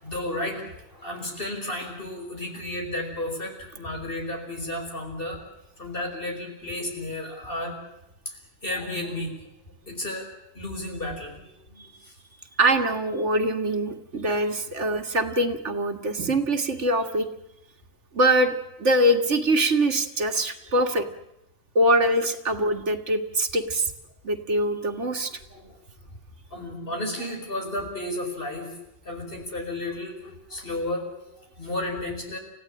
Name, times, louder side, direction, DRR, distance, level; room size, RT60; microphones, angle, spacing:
voice 1, 0.0-5.4 5.8-7.8 8.3-9.3 9.8-10.3 10.5-12.2 25.3-25.8 26.5-28.7 29.0-32.4, left 1 dB, 50° left, 2 dB, 5.5 m, -33 dB
voice 2, 12.6-17.3 18.1-18.5 18.8-21.1 21.8-23.9 24.2-25.4, right 1 dB, 75° right, 6 dB, 2.1 m, -23 dB
29.5 x 16.0 x 8.8 m, 0.88 s
omnidirectional pair, 1.2 m